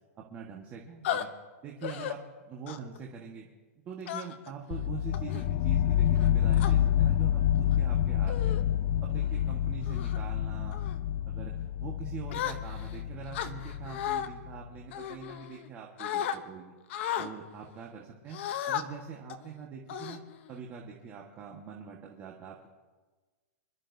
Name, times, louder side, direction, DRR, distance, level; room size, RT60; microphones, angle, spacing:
voice 1, 0.1-1.3 1.6-2.2 2.5-3.5 3.8-8.6 9.0-10.8 11.3-11.5 11.8-16.7 17.2-18.4 18.7-22.7, right 6 dB, 20° right, -1 dB, 1.5 m, -44 dB
sound 1, 1.0-1.2 1.8-2.1 2.7-3.0 4.1-4.5 5.1-5.4 6.1-6.7 7.5-7.8 8.3-8.6 9.1-9.4 9.9-10.2 10.7-11.0 12.3-12.9 13.3-14.3 14.9-15.7 16.0-16.4 16.9-17.3 18.3-18.8 19.3-19.5 19.9-20.6, left 10 dB, 50° left, 0.9 m, -35 dB
sound 2, 4.7-14.5, left 11 dB, 35° left, 0.3 m, -28 dB
26.5 x 12.5 x 2.7 m, 1.3 s
hypercardioid pair, 160°, 8 cm